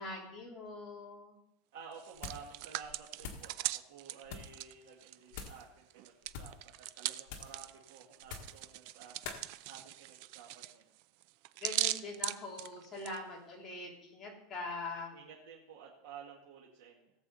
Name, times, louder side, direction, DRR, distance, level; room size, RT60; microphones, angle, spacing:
voice 1, 0.0-1.4 11.6-15.1, left 3 dB, 15° left, -5 dB, 3.3 m, -43 dB
voice 2, 1.7-9.4 9.7-10.9 15.1-17.1, right 6 dB, 70° right, -2 dB, 2.0 m, -53 dB
Hands, 1.9-5.6 5.9-13.2, right 16 dB, 50° right, 0.4 m, -40 dB
sound 1, 2.1-2.5 2.8-3.5 4.2-4.6 5.3-5.7 6.2-6.6 7.3-7.6 8.2-8.6 9.2-9.4, left 6 dB, 55° left, 1.7 m, -45 dB
17.5 x 7.6 x 4.1 m, 0.79 s
supercardioid pair, 170°, 0 cm